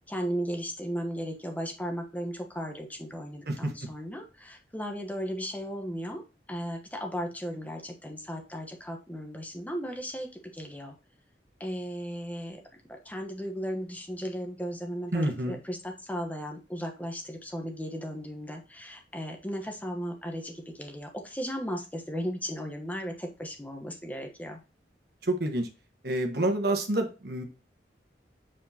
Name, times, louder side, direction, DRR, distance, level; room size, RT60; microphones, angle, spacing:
voice 1, 0.1-6.2 6.5-10.3 10.5-10.9 11.6-12.6 13.0-24.6, equal, 10° left, 3 dB, 1.0 m, -36 dB
voice 2, 15.1-15.6 25.2-25.7 26.0-27.4, right 1 dB, 60° right, 4 dB, 1.2 m, -28 dB
7.6 x 4.4 x 2.8 m, 0.31 s
head